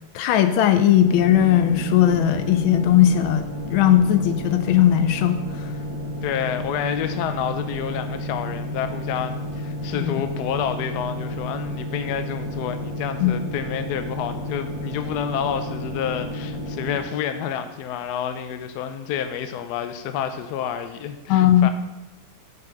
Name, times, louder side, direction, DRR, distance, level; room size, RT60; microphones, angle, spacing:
voice 1, 0.1-5.4 9.9-10.2 13.2-13.3 21.3-21.7, left 11 dB, 85° left, 9 dB, 1.5 m, -18 dB
sound 1, 1.0-17.0, left 1 dB, 15° right, 1.6 m, -31 dB
voice 2, 6.2-21.7, left 8 dB, 70° left, 9 dB, 1.0 m, -29 dB
6.6 x 5.3 x 5.7 m, 0.96 s
omnidirectional pair, 2.2 m